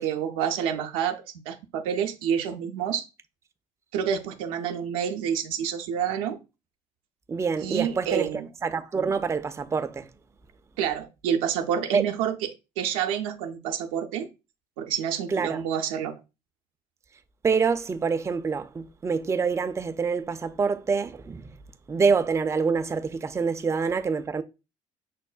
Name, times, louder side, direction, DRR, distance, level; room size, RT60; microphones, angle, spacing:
voice 1, 0.0-3.1 3.9-6.4 7.6-8.5 10.8-12.3 12.8-14.3 14.8-16.1, right 8 dB, 80° right, 0.5 m, -28 dB
voice 2, 7.3-8.3 8.6-10.1 11.9-12.0 15.3-15.6 17.4-21.6 21.9-24.4, right 5 dB, 15° right, 0.3 m, -26 dB
6.1 x 2.1 x 2.3 m
hypercardioid pair, 50°, 17 cm